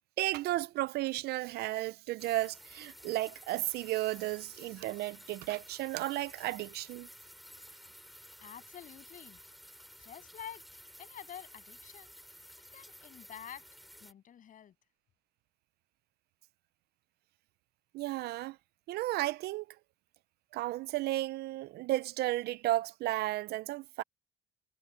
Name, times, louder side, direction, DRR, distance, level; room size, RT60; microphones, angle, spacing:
voice 1, 0.2-7.1 17.9-18.6 18.9-19.7 20.5-24.0, right 16 dB, 75° right, 0.5 m, -33 dB
sound 1, 2.2-14.1, equal, ahead, 3.4 m, -53 dB
voice 2, 8.4-9.4 10.0-10.6 11.0-13.7 14.0-14.7, left 9 dB, 50° left, 7.9 m, -49 dB
cardioid pair, 110°, 17 cm